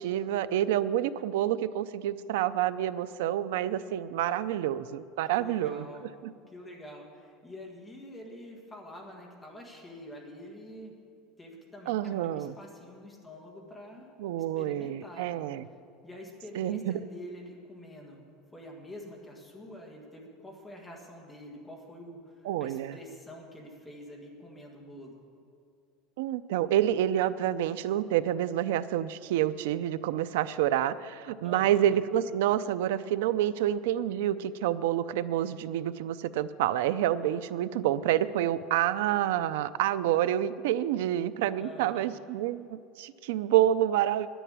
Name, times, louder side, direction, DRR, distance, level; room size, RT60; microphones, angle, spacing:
voice 1, 0.0-5.8 6.2-6.3 11.9-12.5 14.2-15.7 16.6-17.0 22.4-23.0 26.2-44.3, right 11 dB, 90° right, 13 dB, 0.4 m, -28 dB
voice 2, 5.3-6.1 6.5-11.0 11.4-14.1 14.5-15.4 16.0-18.2 18.5-25.2 31.4-32.0 41.6-42.2, left 1 dB, 10° left, 0 dB, 1.6 m, -46 dB
10.0 x 10.0 x 8.7 m, 2.3 s
cardioid pair, 175°, 0 cm